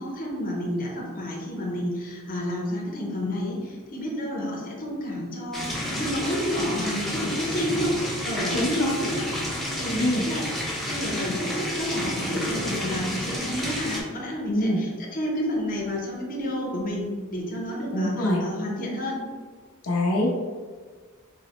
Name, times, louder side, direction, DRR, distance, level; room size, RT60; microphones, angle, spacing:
voice 1, 0.0-8.6 8.9-9.3 9.8-10.5 10.8-19.2, equal, 40° left, -3 dB, 0.7 m, -30 dB
sound 1, 5.5-14.0, left 1 dB, ahead, 0.5 m, -30 dB
voice 2, 8.5-9.0 9.9-10.2 14.5-14.8 17.9-18.4 19.8-20.4, left 1 dB, 85° left, -2 dB, 0.5 m, -24 dB
3.9 x 2.0 x 2.9 m, 1.5 s
head